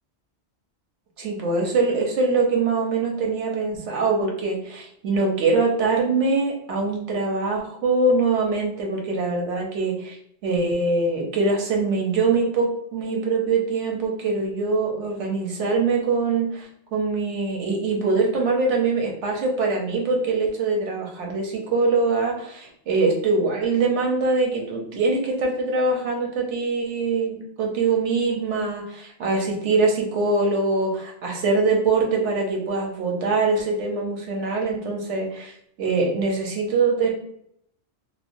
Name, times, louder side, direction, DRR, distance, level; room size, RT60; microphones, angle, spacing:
voice 1, 1.2-10.2 10.4-35.5 35.8-37.1, right 3 dB, 90° right, 0 dB, 1.1 m, -23 dB
3.1 x 2.2 x 2.5 m, 0.71 s
omnidirectional pair, 1.2 m